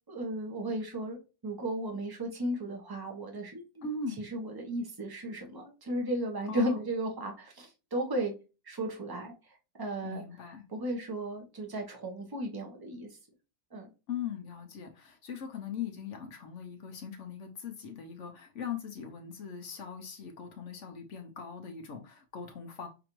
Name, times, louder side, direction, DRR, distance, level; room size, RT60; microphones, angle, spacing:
voice 1, 0.1-3.9 4.2-8.3 8.6-10.2 10.7-13.1 13.7-13.9, right 1 dB, 20° right, 0.7 m, -35 dB
voice 2, 3.8-4.2 6.5-6.8 10.0-10.7 14.1-22.9, left 6 dB, 65° left, 0.9 m, -40 dB
5.9 x 2.6 x 2.9 m
omnidirectional pair, 1.5 m